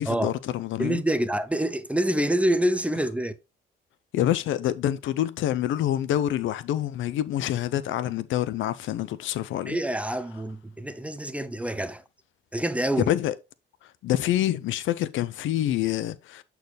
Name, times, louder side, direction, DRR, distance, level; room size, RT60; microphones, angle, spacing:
voice 1, 0.0-1.0 4.1-9.8 13.0-13.3 14.0-16.4, left 12 dB, 80° left, 0.6 m, -26 dB
voice 2, 0.8-3.3 9.7-12.0 12.5-13.1, right 1 dB, 5° right, 0.6 m, -26 dB
7.9 x 4.6 x 3.4 m
cardioid pair, 90°, 20 cm